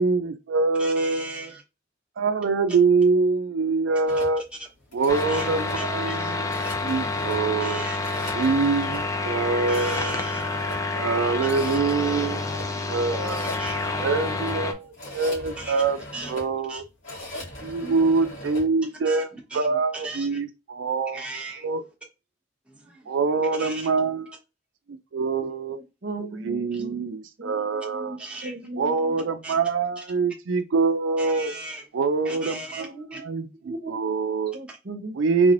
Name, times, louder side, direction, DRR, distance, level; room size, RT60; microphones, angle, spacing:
voice 1, 0.0-1.5 2.2-4.4 4.9-6.5 6.8-7.8 8.3-10.2 10.9-12.4 12.9-13.6 14.0-16.0 16.3-16.8 17.6-19.3 19.5-21.2 21.6-21.8 23.1-24.3 24.9-25.8 26.4-28.2 28.8-31.5 31.9-32.9 33.2-33.5 33.9-34.5 35.2-35.5, right 4 dB, 80° right, 0.4 m, -24 dB
voice 2, 0.8-1.6 4.6-4.7 5.3-5.5 5.7-6.3 6.6-6.7 7.0-7.2 7.6-8.3 9.7-10.4 13.6-13.9 15.6-15.8 16.1-16.4 16.7-16.8 17.8-17.9 19.0-20.4 21.1-21.7 22.7-23.1 23.6-23.9 26.7-26.8 28.2-28.5 29.4-29.5 30.0-30.1 31.2-31.8 32.2-33.2, right 2 dB, 5° right, 0.9 m, -38 dB
sound 1, 4.1-18.7, left 1 dB, 80° left, 2.0 m, -40 dB
sound 2, 5.1-14.7, left 3 dB, 15° left, 0.4 m, -28 dB
voice 3, 25.4-29.2 32.8-33.3 33.6-34.1 34.5-35.2, right 2 dB, 55° right, 0.7 m, -38 dB
3.6 x 3.2 x 2.5 m
head